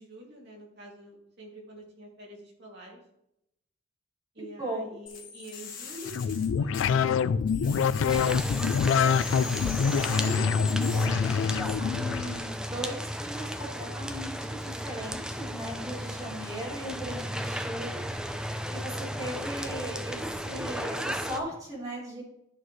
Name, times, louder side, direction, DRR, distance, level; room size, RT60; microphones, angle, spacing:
voice 1, 0.0-3.0 4.3-9.1 15.9-16.9 22.2-22.3, right 1 dB, 55° right, -2 dB, 2.6 m, -48 dB
sound 1, 5.1-7.2 7.5-11.1, left 6 dB, 45° left, 1.6 m, -40 dB
sound 2, 6.0-12.4, left 6 dB, 75° left, 0.3 m, -26 dB
sound 3, 8.1-21.4, equal, 5° right, 0.5 m, -35 dB
voice 2, 10.0-18.0 18.4-22.2, equal, 20° right, -5 dB, 3.5 m, -38 dB
11.5 x 6.4 x 3.2 m, 0.80 s
head